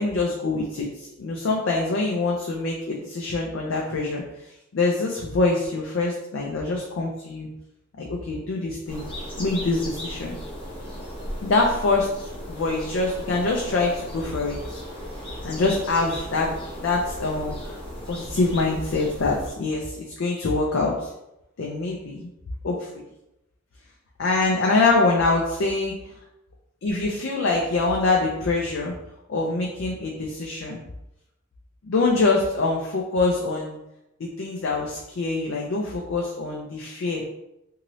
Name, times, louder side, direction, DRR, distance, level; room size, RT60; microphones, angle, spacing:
voice 1, 0.0-4.2 4.7-7.5 8.0-9.0 9.4-10.3 11.4-12.1 12.5-14.8 15.4-16.5 16.8-17.8 18.1-21.1 21.6-22.3 22.6-23.0 24.2-25.9 26.8-28.9 29.3-30.8 31.8-33.8 34.2-37.2, left 3 dB, 70° left, -1 dB, 0.4 m, -24 dB
sound 1, 8.9-19.5, equal, 25° left, 0.7 m, -36 dB
2.7 x 2.6 x 3.0 m, 0.87 s
head